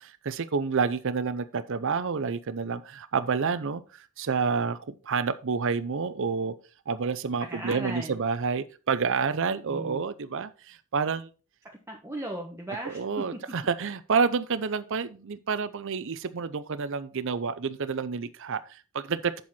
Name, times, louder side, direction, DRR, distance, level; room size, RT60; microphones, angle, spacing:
voice 1, 0.0-6.5 6.9-11.3 12.9-19.4, right 5 dB, 60° right, 0.6 m, -29 dB
voice 2, 7.5-8.2 9.7-10.0 11.9-13.4, right 1 dB, 10° right, 1.2 m, -37 dB
7.8 x 7.3 x 4.2 m
head